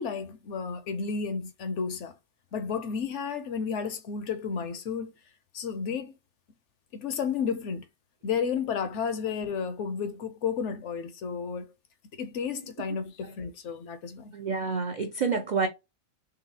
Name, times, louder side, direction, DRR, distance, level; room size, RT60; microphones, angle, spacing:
voice 1, 0.0-2.1 2.5-5.1 5.5-6.1 6.9-7.8 8.2-11.7 12.2-14.3, left 6 dB, 65° left, 0.9 m, -32 dB
voice 2, 14.3-15.7, right 4 dB, 65° right, 0.4 m, -28 dB
3.9 x 3.3 x 2.8 m
omnidirectional pair, 1.5 m